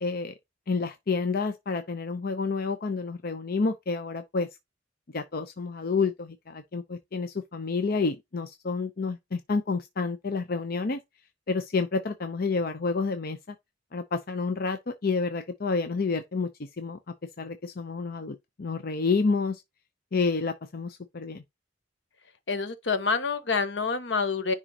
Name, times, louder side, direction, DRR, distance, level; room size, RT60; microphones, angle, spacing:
voice 1, 0.0-0.3 0.7-4.5 5.1-11.0 11.5-13.4 13.9-17.0 17.4-19.6 20.1-21.4, left 4 dB, 55° left, 0.7 m, -29 dB
voice 2, 22.5-24.5, left 4 dB, 75° left, 1.1 m, -27 dB
10.0 x 3.7 x 2.9 m
head